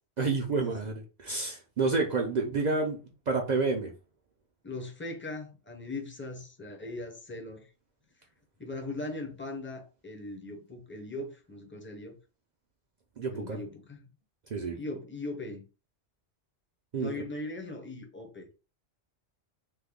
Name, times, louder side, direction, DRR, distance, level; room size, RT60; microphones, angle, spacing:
voice 1, 0.2-3.9 13.2-13.6 14.5-14.8 16.9-17.1, right 4 dB, 55° right, 0.5 m, -29 dB
voice 2, 4.6-7.7 8.6-12.2 13.3-14.1 14.7-15.6 16.9-18.5, left 2 dB, 15° left, 0.6 m, -39 dB
3.2 x 2.1 x 3.5 m
omnidirectional pair, 1.2 m